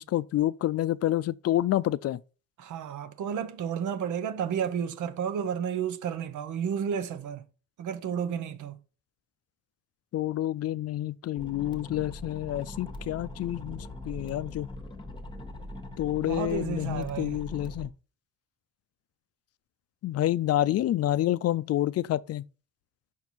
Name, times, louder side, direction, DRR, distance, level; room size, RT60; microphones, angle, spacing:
voice 1, 0.0-2.2 10.1-14.7 16.0-17.9 20.0-22.5, left 13 dB, 55° left, 0.4 m, -28 dB
voice 2, 2.6-7.5 7.8-8.8 16.2-17.4, right 8 dB, 75° right, 0.9 m, -32 dB
sound 1, 11.4-17.9, left 1 dB, 15° left, 1.1 m, -41 dB
5.7 x 4.5 x 4.1 m
cardioid pair, 90°, 30 cm